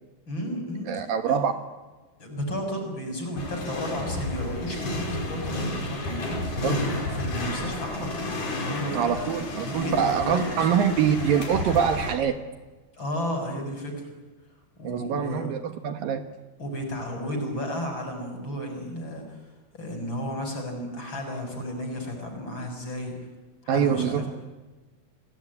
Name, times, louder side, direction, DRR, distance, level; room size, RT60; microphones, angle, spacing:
voice 1, 0.3-0.9 1.3-1.4 2.2-6.6 7.2-9.4 9.6-10.8 13.0-14.1 14.8-15.5 16.6-19.4 19.7-23.2 23.6-24.3, equal, 30° left, 4 dB, 7.2 m, -33 dB
voice 2, 0.9-1.5 6.6-6.8 8.9-12.4 14.8-16.3 23.7-24.3, right 8 dB, 70° right, 8 dB, 2.9 m, -24 dB
sound 1, 3.4-12.1, left 2 dB, 55° left, 6.4 m, -31 dB
29.5 x 20.5 x 9.8 m, 1.2 s
omnidirectional pair, 4.5 m